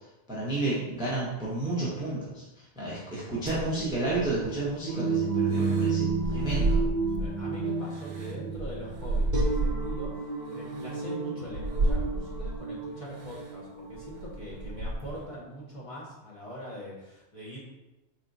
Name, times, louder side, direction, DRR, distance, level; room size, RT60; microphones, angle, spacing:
voice 1, 0.3-6.9, right 2 dB, 5° right, -7 dB, 0.7 m, -31 dB
Scared Breathing, 3.5-4.6 5.5-7.4 7.9-10.1 10.7-10.9 11.5-12.6 13.2-13.5 13.9-15.3, right 2 dB, 80° right, 1.0 m, -31 dB
sound 1, 4.9-14.8, right 4 dB, 50° right, 0.6 m, -32 dB
voice 2, 7.2-17.6, left 1 dB, 30° left, -8 dB, 1.3 m, -42 dB
4.3 x 3.2 x 2.6 m, 0.97 s
omnidirectional pair, 1.2 m